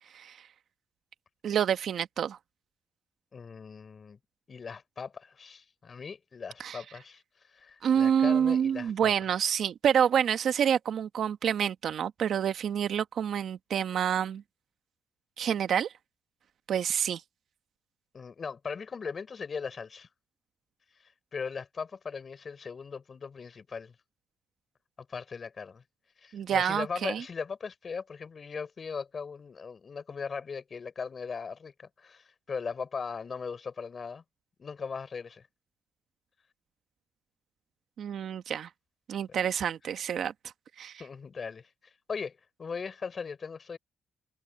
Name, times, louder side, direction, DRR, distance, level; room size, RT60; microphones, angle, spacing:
voice 1, 1.4-2.4 6.6-6.8 7.8-14.4 15.4-15.9 16.7-17.2 26.3-27.2 38.0-38.7 39.1-40.3 40.8-41.0, right 8 dB, 65° right, 1.4 m, -27 dB
voice 2, 3.3-4.2 4.5-7.2 7.5-9.1 18.1-20.1 21.3-23.9 25.1-25.8 26.2-34.2 34.6-35.4 39.3-39.4 41.0-43.8, left 5 dB, 40° left, 5.7 m, -39 dB
cardioid pair, 90°, 0 cm